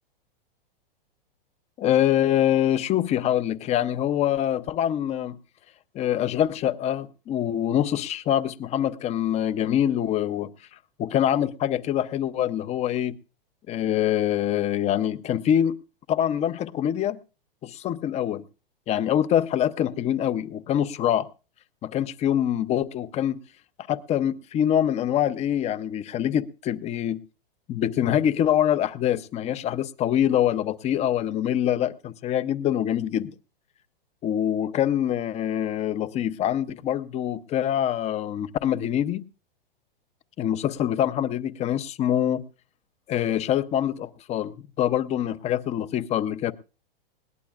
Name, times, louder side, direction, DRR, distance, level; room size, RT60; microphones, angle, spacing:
voice 1, 1.8-5.4 5.9-10.5 11.0-13.1 13.7-15.8 16.1-17.2 17.6-18.4 18.9-21.3 21.8-23.4 23.9-27.2 27.7-33.3 34.2-39.2 40.4-42.4 43.1-46.5, left 10 dB, 20° left, 0.7 m, -25 dB
20.5 x 18.0 x 2.4 m
hypercardioid pair, 125°, 30 cm